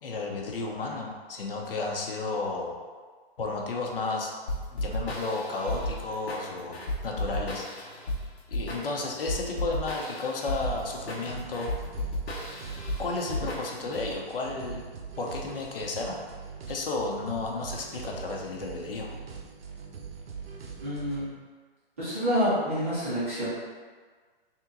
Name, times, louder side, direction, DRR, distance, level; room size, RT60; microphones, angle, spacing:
voice 1, 0.0-2.7 3.4-4.3 4.7-7.6 8.5-11.7 13.0-14.8 15.2-16.2 16.7-19.1, left 3 dB, 60° left, 0 dB, 0.8 m, -32 dB
sound 1, 4.5-14.0, left 1 dB, 90° left, 1.0 m, -34 dB
sound 2, 10.6-21.3, right 6 dB, 70° right, 0.7 m, -42 dB
voice 2, 20.8-21.3 22.0-23.5, equal, 15° right, -13 dB, 0.5 m, -27 dB
3.6 x 2.9 x 3.7 m, 1.5 s
hypercardioid pair, 175°, 31 cm